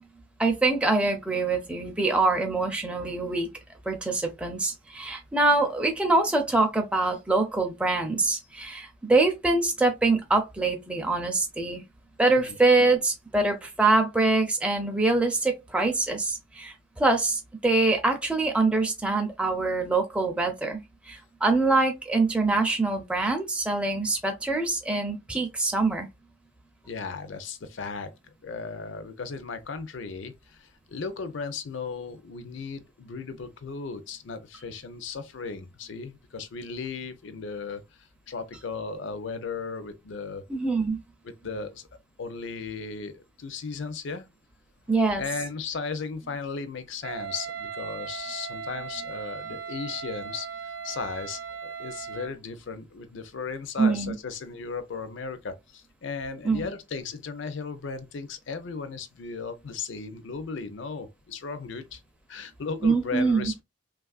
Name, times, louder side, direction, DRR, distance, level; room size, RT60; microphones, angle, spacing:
voice 1, 0.4-3.5 3.9-11.8 12.2-26.1 40.5-41.0 44.9-45.2 53.8-54.1 56.4-56.7 62.8-63.5, right 3 dB, 5° right, 0.4 m, -24 dB
voice 2, 26.8-40.4 41.2-41.9 42.2-44.3 45.2-62.0 62.3-63.6, left 4 dB, 60° left, 0.5 m, -36 dB
Wind instrument woodwind instrument, 47.0-52.4, right 7 dB, 60° right, 0.5 m, -38 dB
3.1 x 2.4 x 2.3 m
head